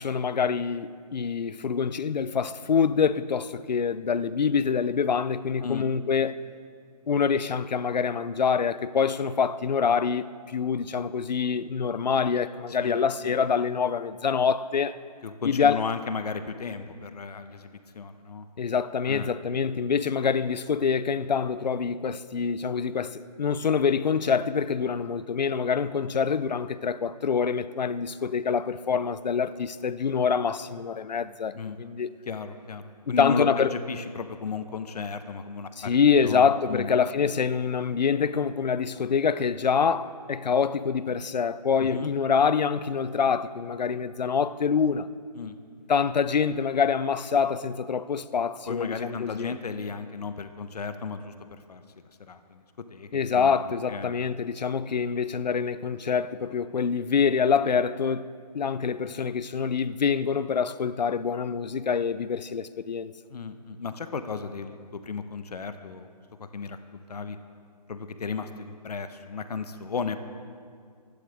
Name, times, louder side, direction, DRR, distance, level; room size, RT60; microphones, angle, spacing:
voice 1, 0.0-6.4 7.1-15.0 15.4-15.8 18.6-32.1 33.1-33.7 35.8-45.1 45.9-49.5 53.1-63.1, left 6 dB, 85° left, 0.7 m, -26 dB
voice 2, 12.7-13.3 15.2-18.5 19.1-19.3 31.5-31.8 32.3-36.9 41.8-42.1 45.3-45.6 48.7-51.3 51.7-51.8 52.3-52.6 52.9-53.6 53.9-54.1 63.3-66.1 66.4-67.4 67.9-70.2, left 5 dB, 70° left, 1.1 m, -34 dB
24.5 x 11.5 x 3.6 m
hypercardioid pair, 160°, 21 cm